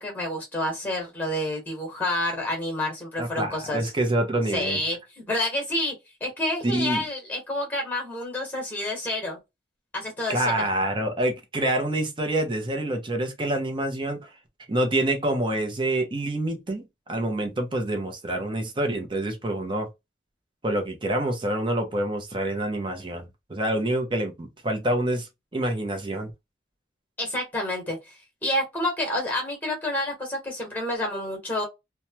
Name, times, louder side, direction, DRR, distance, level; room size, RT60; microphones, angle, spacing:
voice 1, 0.0-3.9 4.5-5.9 6.2-9.4 9.9-10.7 27.2-28.1 28.4-31.6, left 1 dB, 10° left, 1.3 m, -29 dB
voice 2, 3.2-4.8 6.6-7.0 10.3-14.3 14.7-19.9 20.6-26.3, right 1 dB, 25° right, 0.7 m, -27 dB
3.1 x 2.2 x 2.8 m
head